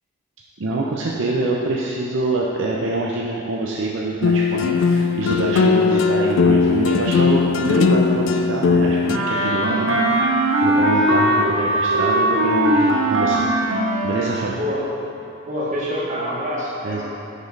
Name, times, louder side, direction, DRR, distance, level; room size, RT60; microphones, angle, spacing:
voice 1, 0.6-10.0 10.3-13.5 14.0-14.6 16.8-17.0, right 2 dB, 65° right, -3 dB, 0.6 m, -25 dB
sound 1, 4.2-9.2, left 5 dB, 65° left, 0.3 m, -18 dB
Wind instrument woodwind instrument, 9.1-14.3, right 1 dB, 85° right, 0.9 m, -19 dB
voice 2, 14.6-14.9 15.4-17.0, equal, 35° right, -7 dB, 1.4 m, -26 dB
6.4 x 5.1 x 5.3 m, 3.0 s
head